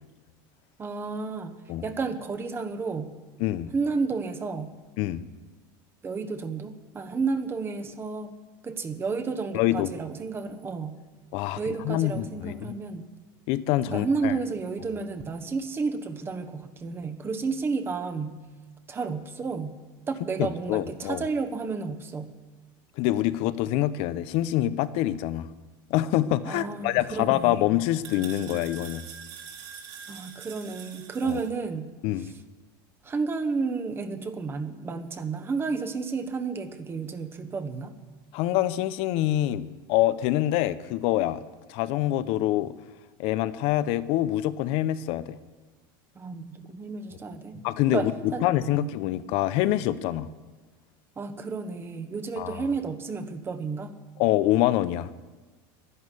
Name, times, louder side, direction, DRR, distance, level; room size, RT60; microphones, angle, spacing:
voice 1, 0.8-1.5 1.8-3.1 3.7-4.7 6.0-8.3 8.6-11.0 11.5-13.0 13.9-18.4 18.9-19.8 20.1-22.3 26.4-27.6 30.1-31.9 32.2-32.3 33.0-37.9 46.1-48.5 48.7-48.9 51.2-53.9, right 4 dB, 20° right, 8 dB, 1.1 m, -31 dB
voice 2, 3.4-3.7 5.0-5.3 9.5-9.9 11.3-12.7 13.5-14.3 20.4-21.2 23.0-25.5 25.9-29.1 31.2-31.4 32.0-32.3 38.3-41.4 41.7-42.7 43.2-45.4 47.6-50.3 52.4-52.7 54.2-55.1, left 14 dB, 55° left, 15 dB, 0.7 m, -26 dB
sound 1, 26.9-31.5, right 7 dB, 65° right, 3.0 m, -45 dB
11.0 x 11.0 x 8.3 m, 1.3 s
supercardioid pair, 140°, 11 cm